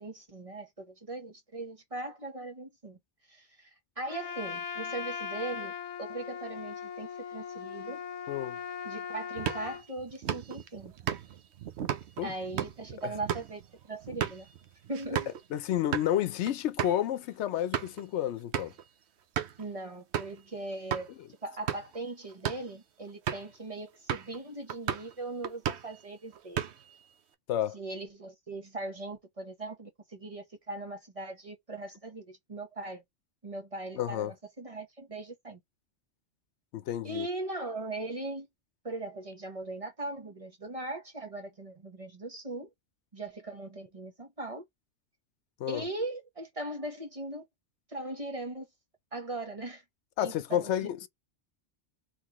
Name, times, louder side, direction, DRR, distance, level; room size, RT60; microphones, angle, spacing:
voice 1, 0.0-3.0 3.3-3.7 4.0-5.7 6.0-8.0 8.8-10.9 12.2-13.6 13.9-14.5 14.9-15.3 19.6-21.1 21.4-26.6 27.7-33.0 33.4-35.6 37.0-38.5 38.8-42.7 43.1-44.6 45.7-47.4 47.9-48.7 49.1-49.8 50.2-50.9, right 2 dB, 30° right, 1.1 m, -39 dB
Trumpet, 4.1-9.8, left 7 dB, 40° left, 0.6 m, -39 dB
voice 2, 8.3-8.6 12.2-12.3 15.5-18.7 27.5-27.8 33.9-34.3 36.7-37.3 45.6-45.8 50.2-51.1, left 11 dB, 80° left, 0.9 m, -30 dB
sound 1, 9.4-15.4 15.8-16.1 16.5-16.6 16.8-17.0 17.5-18.0 18.5-18.8 19.4-19.6 20.1-20.4 20.9-21.1 21.5-22.0 22.3-22.7 23.3-23.6 24.1-24.4 24.7-25.1 25.4-26.0 26.3-27.0, right 9 dB, 75° right, 1.0 m, -35 dB
3.8 x 3.4 x 3.0 m
omnidirectional pair, 1.2 m